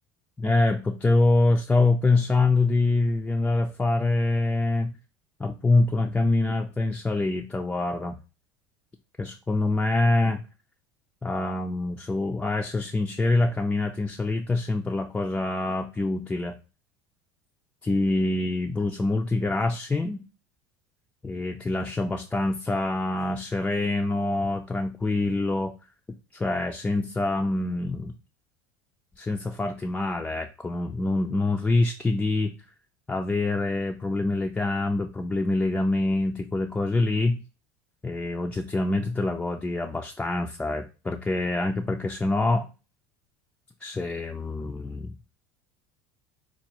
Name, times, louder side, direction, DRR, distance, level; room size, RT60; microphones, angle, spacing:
voice 1, 0.4-5.0 5.4-8.2 9.2-10.4 11.2-16.6 17.8-20.2 21.2-25.7 26.3-28.1 29.2-32.5 33.1-37.4 38.0-42.7 43.8-45.1, left 2 dB, 10° left, 2 dB, 0.3 m, -25 dB
4.4 x 2.3 x 2.9 m, 0.31 s
supercardioid pair, 105°, 10 cm